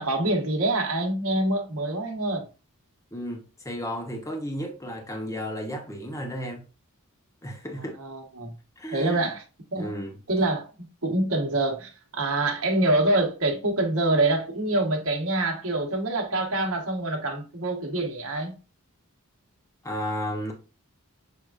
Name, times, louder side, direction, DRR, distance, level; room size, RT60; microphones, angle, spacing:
voice 1, 0.0-2.4 7.8-8.5 8.9-9.4 9.7-10.0 10.3-18.5, right 2 dB, 70° right, 1.2 m, -26 dB
voice 2, 3.1-6.6 7.4-8.0 8.8-9.3 9.8-10.2 19.8-20.5, equal, 15° left, 0.8 m, -33 dB
6.3 x 3.5 x 2.4 m
head